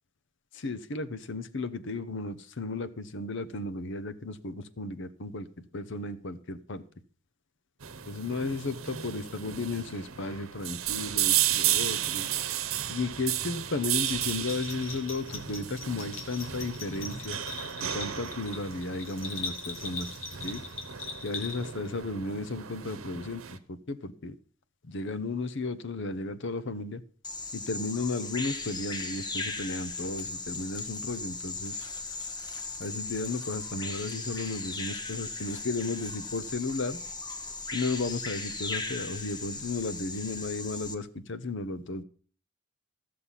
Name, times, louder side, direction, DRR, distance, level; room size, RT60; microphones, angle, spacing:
voice 1, 0.5-5.5 5.7-6.8 8.1-12.3 12.9-17.4 17.8-20.1 20.4-20.6 21.2-24.4 24.8-27.0 27.5-31.8 32.8-37.0 37.7-42.0, left 3 dB, 65° left, 14 dB, 0.9 m, -34 dB
sound 1, 7.8-23.6, right 11 dB, 90° right, 0.9 m, -33 dB
Bell, 14.0-21.9, left 4 dB, 85° left, 2.4 m, -40 dB
Bird vocalization bird call bird song, 27.2-40.9, left 3 dB, 20° left, 1.0 m, -37 dB
14.0 x 6.7 x 5.6 m, 0.43 s
head